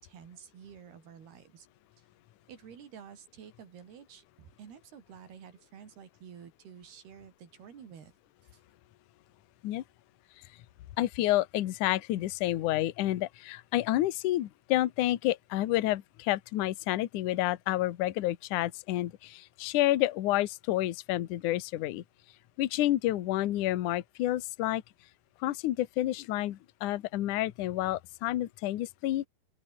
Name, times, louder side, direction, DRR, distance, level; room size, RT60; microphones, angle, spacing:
voice 1, 0.0-1.7 2.5-8.1 8.5-8.6, right 8 dB, 60° right, 5.2 m, -50 dB
voice 2, 11.0-22.0 22.6-24.8 25.4-29.2, left 15 dB, 75° left, 1.9 m, -29 dB
open air
omnidirectional pair, 5.3 m